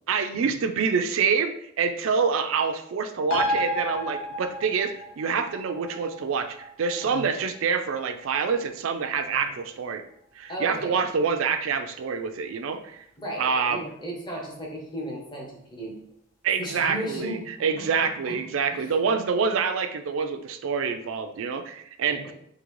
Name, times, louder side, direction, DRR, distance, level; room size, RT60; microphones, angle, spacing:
voice 1, 0.1-10.0 10.4-13.0 13.4-13.8 16.4-22.2, right 5 dB, 65° right, 8 dB, 0.4 m, -26 dB
sound 1, 3.3-10.3 10.6-10.7, left 1 dB, 65° left, 0.6 m, -34 dB
voice 2, 10.5-11.0 13.2-16.0 16.6-17.9 18.3-18.4 18.7-18.9 22.1-22.3, right 1 dB, 20° left, -1 dB, 0.8 m, -36 dB
3.8 x 2.8 x 3.1 m, 0.73 s
head